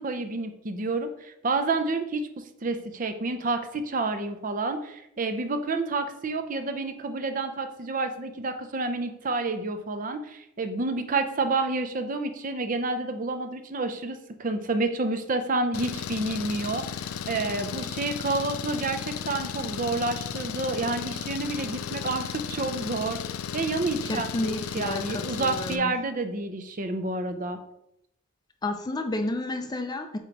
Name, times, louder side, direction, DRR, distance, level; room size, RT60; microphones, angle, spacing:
voice 1, 0.0-23.2 23.5-27.6, right 3 dB, 40° right, 8 dB, 0.5 m, -29 dB
Engine, 15.7-25.8, left 7 dB, 85° left, 0.4 m, -34 dB
voice 2, 24.0-26.0 28.6-30.2, left 2 dB, 20° left, 6 dB, 0.4 m, -31 dB
8.0 x 2.9 x 4.6 m, 0.81 s
head